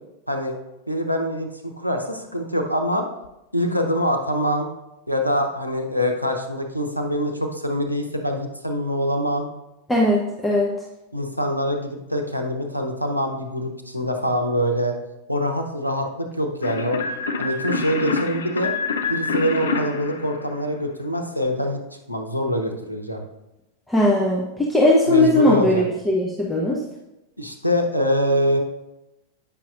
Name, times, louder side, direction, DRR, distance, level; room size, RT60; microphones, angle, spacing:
voice 1, 0.9-3.1 3.5-4.7 5.1-9.5 11.1-15.0 15.3-17.0 17.4-18.7 19.1-21.8 22.1-23.2 25.1-25.8 27.4-28.6, equal, 90° right, 3 dB, 0.7 m, -24 dB
voice 2, 9.9-10.7 23.9-26.8, left 1 dB, 10° left, -3 dB, 0.9 m, -19 dB
sound 1, 16.6-21.1, left 4 dB, 65° left, 0.6 m, -27 dB
8.4 x 5.9 x 2.5 m, 0.94 s
figure-of-eight pair, 90°, 0 cm